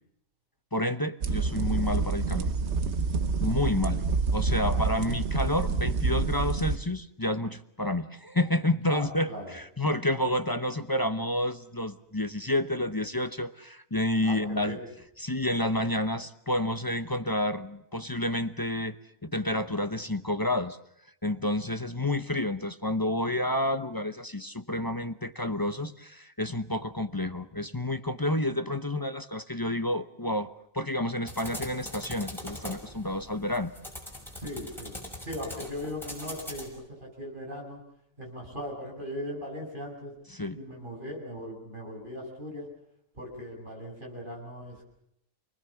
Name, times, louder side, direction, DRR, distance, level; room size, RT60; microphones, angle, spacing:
voice 1, 0.7-2.5 3.4-4.0 4.3-14.8 15.2-19.0 19.2-20.8 21.2-33.7 40.3-40.6, left 1 dB, 20° left, 11 dB, 0.7 m, -29 dB
sound 1, 1.2-6.8, right 4 dB, 55° right, 1.4 m, -27 dB
voice 2, 8.8-9.5 14.2-14.9 34.4-37.8 38.2-40.1 40.5-42.7 43.1-44.8, equal, 35° right, 0 dB, 7.5 m, -39 dB
sound 2, 31.3-36.7, left 1 dB, ahead, 5.9 m, -42 dB
28.5 x 20.0 x 7.3 m, 0.76 s
omnidirectional pair, 1.5 m